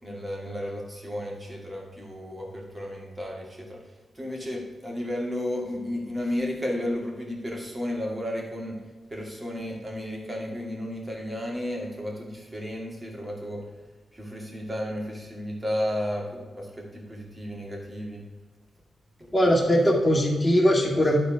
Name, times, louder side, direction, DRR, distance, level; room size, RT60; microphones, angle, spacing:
voice 1, 0.0-3.8 4.1-8.8 9.1-13.6 14.1-18.3 19.2-19.3, left 1 dB, 25° right, -1 dB, 2.4 m, -33 dB
voice 2, 19.3-21.2, equal, 15° left, -3 dB, 2.5 m, -20 dB
11.5 x 4.2 x 5.2 m, 1.4 s
cardioid pair, 75°, 0 cm